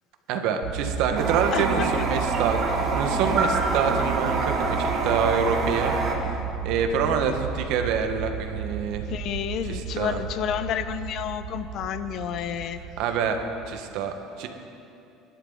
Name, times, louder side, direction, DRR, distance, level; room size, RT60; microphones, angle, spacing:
voice 1, 0.3-5.9 6.6-9.1 9.6-10.2 13.0-13.4 13.7-14.5, right 6 dB, 75° right, 5 dB, 1.6 m, -26 dB
sound 1, 0.6-13.8, right 8 dB, 90° right, 1.5 m, -33 dB
Toilet flush, 1.2-6.2, right 3 dB, 45° right, 2.5 m, -26 dB
voice 2, 9.1-12.8, left 9 dB, 55° left, 11 dB, 0.9 m, -30 dB
24.0 x 12.0 x 4.1 m, 2.7 s
supercardioid pair, 110°, 0 cm